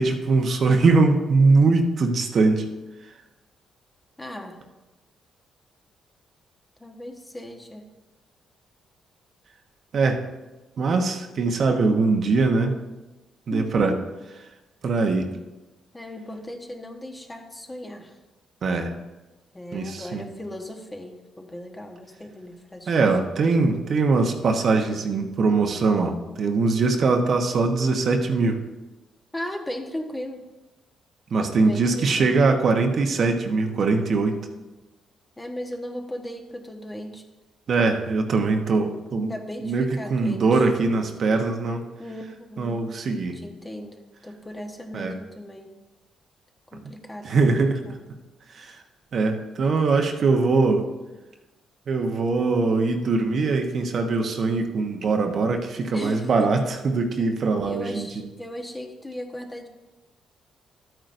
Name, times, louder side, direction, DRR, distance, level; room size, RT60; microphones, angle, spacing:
voice 1, 0.0-2.6 9.9-10.2 10.8-12.8 13.5-13.9 14.8-15.3 18.6-18.9 19.7-20.3 22.9-28.6 31.3-34.4 37.7-39.3 39.6-41.8 42.6-43.4 44.9-45.1 47.2-47.8 48.5-48.8 49.1-50.9 51.9-58.1, right 3 dB, 55° right, 4 dB, 1.0 m, -22 dB
voice 2, 4.2-4.6 6.8-7.8 13.5-14.0 15.9-18.2 19.5-23.3 29.3-30.4 31.5-32.4 35.4-37.2 39.3-40.6 42.0-42.9 43.3-44.0 44.2-45.7 46.7-48.0 48.6-48.8 55.9-56.6 57.6-59.7, left 1 dB, 15° left, 3 dB, 1.2 m, -37 dB
12.0 x 9.0 x 2.6 m, 1.1 s
cardioid pair, 90°, 0 cm